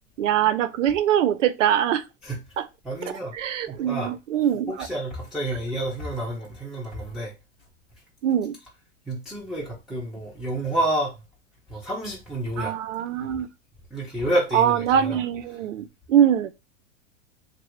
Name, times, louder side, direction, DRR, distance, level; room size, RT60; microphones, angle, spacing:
voice 1, 0.2-2.0 2.6-2.7 3.3-4.9 8.2-8.6 12.6-13.5 14.5-16.5, right 10 dB, 85° right, 0.5 m, -23 dB
voice 2, 2.8-3.3 3.7-4.1 4.7-7.3 9.1-11.2 11.7-12.8 13.9-15.2, right 1 dB, ahead, 0.9 m, -29 dB
3.0 x 2.6 x 3.0 m
hypercardioid pair, 120°, 36 cm